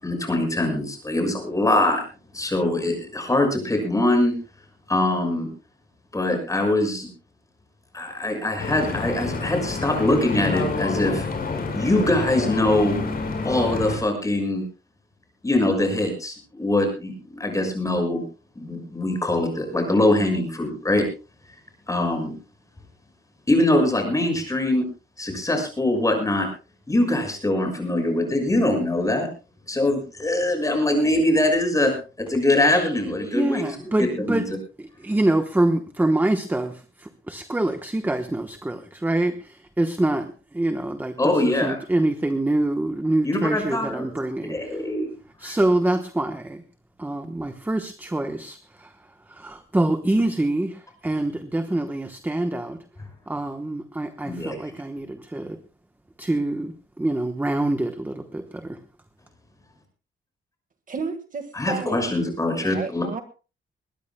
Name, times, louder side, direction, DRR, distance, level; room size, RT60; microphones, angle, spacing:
voice 1, 0.0-2.0 2.3-4.3 4.9-5.5 6.1-7.1 7.9-11.3 11.7-12.9 13.4-14.6 15.4-18.2 18.6-21.0 21.9-22.3 23.5-24.8 25.2-26.5 26.9-29.3 29.7-34.6 41.2-41.8 43.2-44.1 44.5-45.1 45.4-45.6 54.2-54.5 61.5-63.1, left 1 dB, 15° left, 4 dB, 6.2 m, -23 dB
Stream / Boat Water vehicle, 8.6-14.0, left 3 dB, 45° left, 4.9 m, -28 dB
voice 2, 33.3-34.5 34.8-44.8 45.4-46.6 47.0-49.0 49.3-52.8 53.3-55.6 56.2-58.8, right 1 dB, 10° right, 7 dB, 1.0 m, -25 dB
voice 3, 60.9-62.1 62.6-63.2, right 4 dB, 40° right, 7 dB, 1.7 m, -32 dB
22.0 x 19.5 x 2.2 m, 0.34 s
wide cardioid pair, 160°, 21 cm